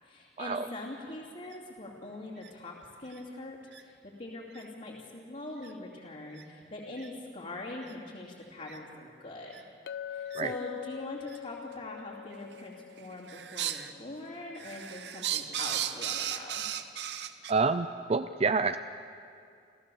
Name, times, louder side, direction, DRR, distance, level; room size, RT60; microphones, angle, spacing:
voice 1, 0.0-9.6 10.1-16.6, left 2 dB, 50° left, -7 dB, 2.7 m, -43 dB
sound 1, 1.4-1.6 2.4-2.5 3.1-3.2 3.7-3.8 4.5-4.6 5.6-5.7 6.3-6.4 7.0-7.1 7.8-7.9 8.7-8.8 9.5-9.6 10.3-10.4 11.3-11.4 12.3-12.7 13.0-13.9 14.3-17.5, right 11 dB, 75° right, 0.9 m, -36 dB
Chink clink, 9.9-14.3, left 9 dB, 65° left, 0.4 m, -43 dB
voice 2, 17.5-18.8, right 4 dB, 35° right, 10 dB, 0.4 m, -28 dB
28.5 x 15.0 x 7.1 m, 2.4 s
head